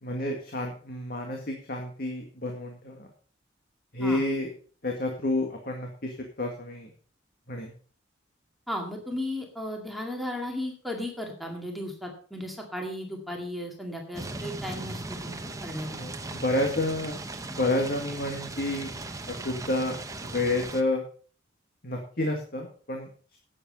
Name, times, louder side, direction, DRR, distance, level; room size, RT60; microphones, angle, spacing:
voice 1, 0.0-3.1 3.9-4.5 4.8-6.9 7.5-7.7 15.9-17.2 17.5-18.9 19.3-21.0 21.8-23.4, left 2 dB, 50° left, 2 dB, 2.0 m, -30 dB
voice 2, 8.7-15.3 15.6-15.9, left 1 dB, ahead, 0 dB, 2.1 m, -35 dB
sound 1, 14.1-20.8, right 2 dB, 15° right, 0.9 m, -38 dB
11.0 x 8.8 x 5.4 m, 0.43 s
head